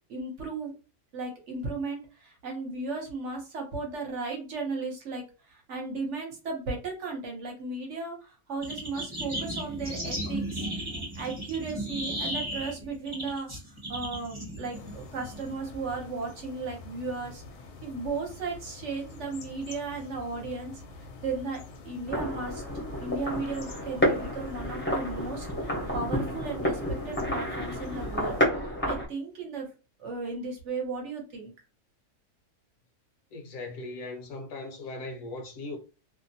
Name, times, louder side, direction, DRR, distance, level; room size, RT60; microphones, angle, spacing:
voice 1, 0.1-0.7 1.1-10.6 11.2-17.4 17.8-20.8 21.2-22.6 23.0-26.8 27.0-28.4 28.8-29.7 30.0-31.5, right 3 dB, 55° right, 1.0 m, -35 dB
sound 1, 8.6-15.5, right 1 dB, 25° right, 0.8 m, -35 dB
sound 2, 14.7-28.4, left 3 dB, 90° left, 1.1 m, -46 dB
sound 3, 22.1-29.1, equal, 10° left, 0.5 m, -30 dB
voice 2, 33.3-35.8, left 2 dB, 65° left, 1.0 m, -38 dB
2.7 x 2.1 x 2.7 m
omnidirectional pair, 1.6 m